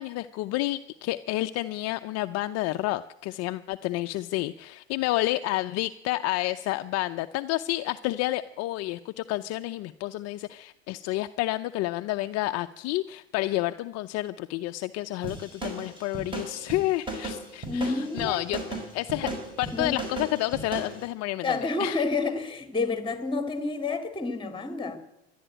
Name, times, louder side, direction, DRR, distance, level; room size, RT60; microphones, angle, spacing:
voice 1, 0.0-18.6 18.9-19.3 19.6-22.1, left 17 dB, 50° left, 0.6 m, -30 dB
sound 1, 15.2-21.0, right 2 dB, 15° right, 5.5 m, -36 dB
voice 2, 17.6-18.4 19.2-19.3 19.7-19.9 21.4-25.0, left 3 dB, 15° left, 2.4 m, -29 dB
13.0 x 11.0 x 9.0 m
supercardioid pair, 105°, 33 cm